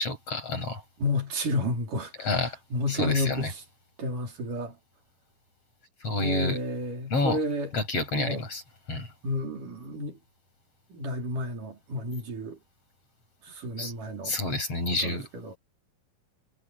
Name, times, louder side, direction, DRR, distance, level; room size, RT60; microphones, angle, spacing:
voice 1, 0.0-0.8 2.2-2.6 2.9-3.5 6.0-6.6 7.1-7.4 7.7-8.6 8.9-9.1 13.8-13.9 14.2-15.3, left 2 dB, 50° left, 8.8 m, -29 dB
voice 2, 1.0-2.4 2.7-3.5 4.0-4.8 6.2-7.7 8.1-8.4 9.2-10.2 10.9-12.6 13.4-14.4 15.0-15.6, left 1 dB, 80° right, 6.0 m, -31 dB
omnidirectional pair, 3.6 m